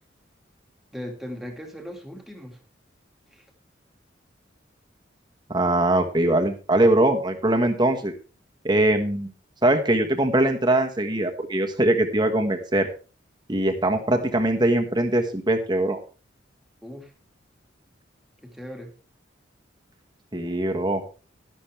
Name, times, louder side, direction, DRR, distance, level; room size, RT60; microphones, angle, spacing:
voice 1, 0.9-2.6 3.3-3.4 16.8-17.1 18.4-18.9, equal, ahead, 2 dB, 2.2 m, -38 dB
voice 2, 5.5-8.1 8.6-9.3 9.6-12.9 13.5-16.0 20.3-21.0, right 1 dB, 20° right, 4 dB, 1.5 m, -22 dB
12.0 x 11.5 x 3.4 m, 0.36 s
head